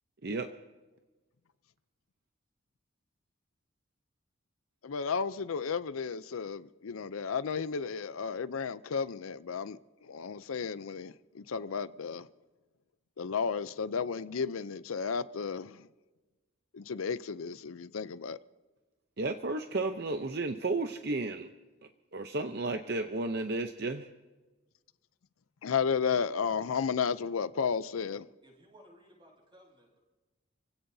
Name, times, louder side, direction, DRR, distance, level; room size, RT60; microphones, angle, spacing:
voice 1, 4.8-12.3 13.2-15.9 16.7-18.4 25.6-28.3, left 6 dB, 90° left, 0.5 m, -33 dB
voice 2, 19.2-21.5 22.1-24.1, right 2 dB, 50° right, 0.7 m, -33 dB
voice 3, 28.4-30.0, equal, 25° right, 7.2 m, -59 dB
29.5 x 16.5 x 2.7 m
head